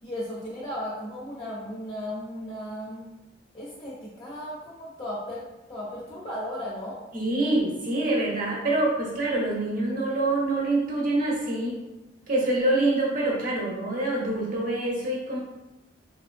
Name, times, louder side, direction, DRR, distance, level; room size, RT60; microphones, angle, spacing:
voice 1, 0.0-3.1 3.5-7.0, equal, 25° left, -6 dB, 0.5 m, -35 dB
voice 2, 7.1-11.8 12.3-15.4, right 2 dB, 45° right, -3 dB, 0.8 m, -25 dB
3.1 x 2.6 x 2.5 m, 0.98 s
head